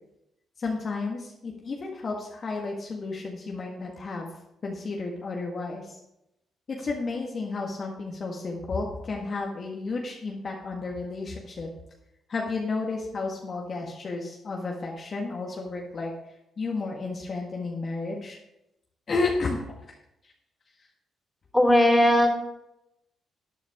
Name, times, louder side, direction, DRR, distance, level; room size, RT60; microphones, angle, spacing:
voice 1, 0.6-4.3 4.6-6.0 6.7-11.7 12.3-16.1 16.6-18.4 19.1-19.6, left 3 dB, 50° left, -1 dB, 1.7 m, -32 dB
voice 2, 21.5-22.3, left 1 dB, 10° left, 1 dB, 3.7 m, -18 dB
12.5 x 9.2 x 3.7 m, 0.87 s
supercardioid pair, 50°, 0 cm